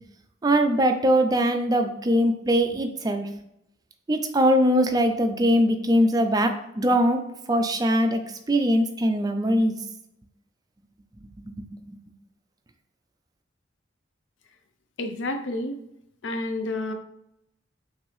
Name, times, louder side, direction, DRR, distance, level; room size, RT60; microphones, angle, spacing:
voice 1, 0.4-3.3 4.1-7.2 7.5-8.2 8.5-9.7 11.5-12.0, equal, 20° right, 6 dB, 0.4 m, -22 dB
voice 2, 15.0-15.8 16.2-16.9, left 2 dB, 90° left, 7 dB, 0.5 m, -29 dB
5.8 x 2.6 x 3.2 m, 0.80 s
head